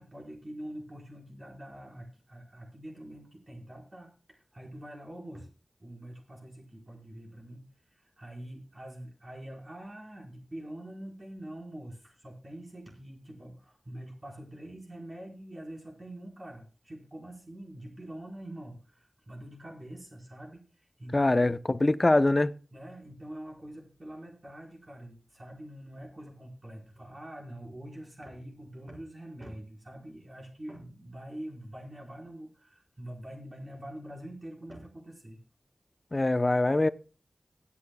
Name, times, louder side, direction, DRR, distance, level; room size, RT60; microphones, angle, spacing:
voice 1, 0.0-5.5 5.8-21.5 22.7-35.4, right 1 dB, 40° right, 4.6 m, -45 dB
voice 2, 21.1-22.5 36.1-36.9, left 2 dB, 35° left, 0.7 m, -23 dB
24.0 x 8.5 x 2.3 m
wide cardioid pair, 65°, 0 cm